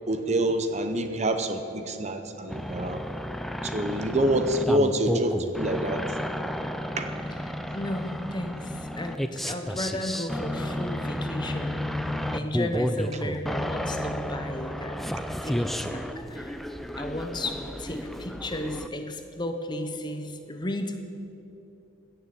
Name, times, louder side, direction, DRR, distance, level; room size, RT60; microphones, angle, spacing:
voice 1, 0.1-3.0 3.6-6.0 7.0-7.2, right 1 dB, 30° right, 7 dB, 0.8 m, -26 dB
sound 1, 2.5-18.9, equal, ahead, 0.4 m, -32 dB
voice 2, 7.7-11.8 12.3-15.1 15.4-16.6 17.0-21.0, left 1 dB, 20° left, 6 dB, 0.8 m, -34 dB
15.5 x 6.9 x 8.7 m, 2.9 s
head